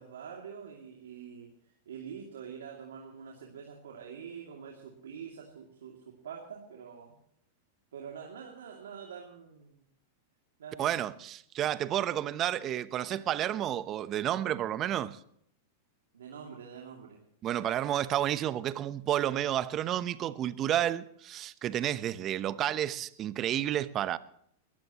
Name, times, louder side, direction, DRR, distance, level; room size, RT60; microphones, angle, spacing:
voice 1, 0.0-7.2 7.9-9.8 10.6-11.1 12.5-13.2 16.1-17.2, right 7 dB, 80° right, 2.6 m, -46 dB
voice 2, 10.8-15.2 17.4-24.2, right 11 dB, 35° right, 0.9 m, -31 dB
21.5 x 15.0 x 3.0 m
hypercardioid pair, 105°, 0 cm